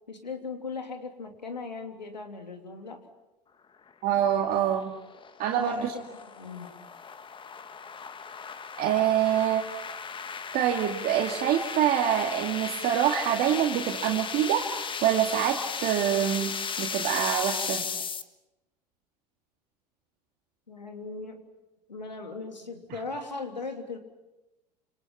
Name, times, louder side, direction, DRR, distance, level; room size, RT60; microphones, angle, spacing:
voice 1, 0.1-3.0 5.5-6.0 6.4-6.7 20.7-21.4 21.9-24.0, left 4 dB, 90° left, 4 dB, 3.3 m, -38 dB
voice 2, 4.0-4.9 5.4-5.9 8.8-9.6 10.5-17.9, right 10 dB, 45° right, 1 dB, 2.4 m, -26 dB
sound 1, 4.3-18.2, left 6 dB, 25° left, 1.6 m, -36 dB
28.5 x 27.5 x 5.8 m, 0.98 s
figure-of-eight pair, 80°, 21 cm